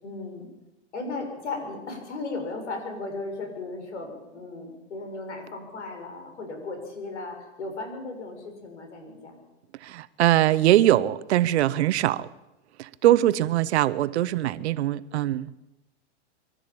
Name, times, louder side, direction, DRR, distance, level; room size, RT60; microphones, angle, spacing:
voice 1, 0.0-0.5 0.9-9.4 13.0-13.3, left 3 dB, 85° left, 7.0 m, -36 dB
voice 2, 9.8-12.3 12.8-15.5, right 14 dB, 70° right, 1.1 m, -22 dB
24.5 x 13.0 x 8.8 m
hypercardioid pair, 120°, 34 cm